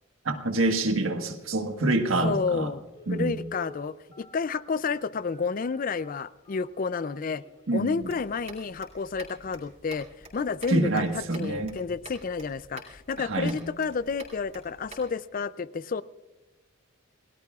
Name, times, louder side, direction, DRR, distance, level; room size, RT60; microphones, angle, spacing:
voice 1, 0.2-2.7 3.1-3.4 7.7-8.1 10.7-11.8 13.2-13.6, right 2 dB, 75° right, 5 dB, 1.4 m, -26 dB
voice 2, 2.2-2.8 3.1-7.4 7.7-10.1 10.3-16.0, left 5 dB, 40° left, 17 dB, 0.4 m, -30 dB
Telephone, 2.9-7.7 8.3-8.4 8.7-8.9 9.3-9.6 9.9-10.0, equal, 25° left, 3.3 m, -49 dB
sound 1, 8.0-15.1, right 2 dB, 30° right, 3.9 m, -48 dB
28.5 x 18.0 x 2.4 m, 1.1 s
head